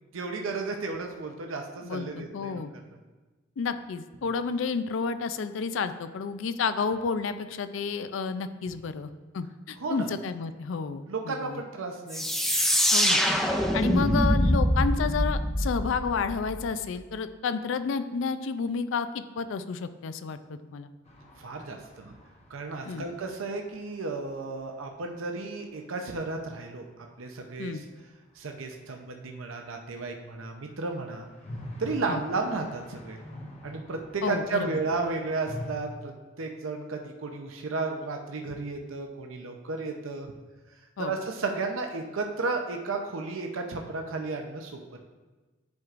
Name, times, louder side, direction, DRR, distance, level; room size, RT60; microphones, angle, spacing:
voice 1, 0.1-3.0 9.8-10.1 11.0-12.3 21.4-22.2 22.5-27.8 28.3-31.3 31.8-33.2 33.6-36.1 36.4-40.3 41.0-44.8, right 3 dB, 90° right, 3 dB, 0.6 m, -33 dB
voice 2, 1.8-2.7 3.6-11.6 12.9-13.2 13.7-20.9 22.9-23.1 27.6-27.8 32.1-32.2 34.2-34.8 41.0-41.1, left 5 dB, 70° left, 11 dB, 0.4 m, -31 dB
sound 1, 12.1-16.7, equal, ahead, 0.4 m, -24 dB
sound 2, 21.1-24.9 25.1-25.2 25.4-25.5 30.5-35.7, left 1 dB, 35° left, 0.9 m, -45 dB
10.5 x 4.6 x 2.5 m, 1.2 s
head